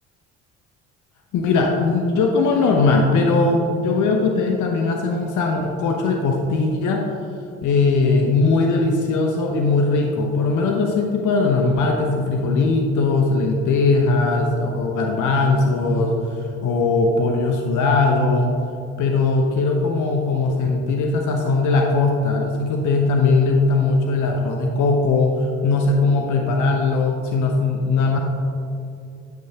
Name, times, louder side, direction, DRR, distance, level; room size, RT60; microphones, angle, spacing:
voice 1, 1.3-7.0 7.6-18.5 19.0-28.2, left 3 dB, 50° left, 2 dB, 1.0 m, -19 dB
10.5 x 8.4 x 2.9 m, 2.7 s
figure-of-eight pair, 50°, 39 cm